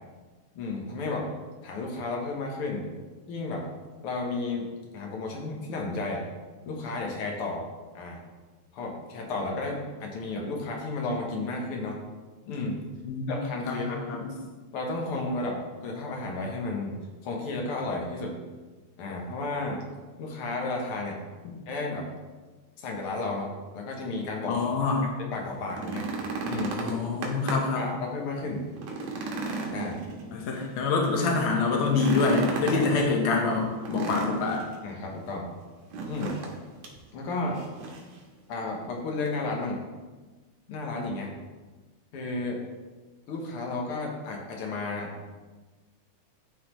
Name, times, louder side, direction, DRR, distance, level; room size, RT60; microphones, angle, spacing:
voice 1, 0.5-1.3 1.6-2.8 3.3-3.7 4.0-4.7 4.9-6.2 6.7-7.7 7.9-8.2 8.7-12.0 12.5-12.8 13.3-14.0 14.7-16.9 17.2-18.3 19.0-19.8 20.2-21.2 21.7-22.1 22.8-24.9 25.2-26.1 26.4-26.8 27.8-28.6 29.7-30.0 32.7-33.0 34.8-35.5 36.1-36.4 37.1-37.6 38.5-39.8 40.7-41.3 42.1-42.6 43.3-45.1, left 3 dB, 60° left, 0 dB, 1.6 m, -32 dB
voice 2, 13.7-14.3 24.5-25.1 26.8-27.9 30.3-34.6, left 4 dB, 80° left, 0 dB, 1.1 m, -26 dB
sound 1, 25.5-27.8 28.2-28.3 28.7-30.6 31.8-32.9 33.8-34.7 35.9-36.6 36.8-37.0 37.5-38.1 39.3-39.4, right 3 dB, 75° right, 2.2 m, -33 dB
11.5 x 4.0 x 3.0 m, 1.3 s
omnidirectional pair, 3.4 m